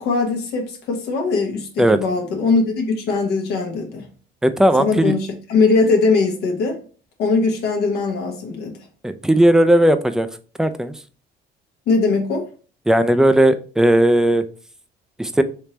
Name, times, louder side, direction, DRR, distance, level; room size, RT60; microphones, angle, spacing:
voice 1, 0.0-4.1 4.8-6.8 7.2-8.7 11.9-12.5, left 4 dB, 75° left, 0.9 m, -20 dB
voice 2, 4.4-5.1 9.0-10.3 10.6-10.9 12.9-14.4 15.2-15.4, right 1 dB, 5° right, 0.3 m, -16 dB
3.4 x 3.1 x 2.8 m
cardioid pair, 110°, 17 cm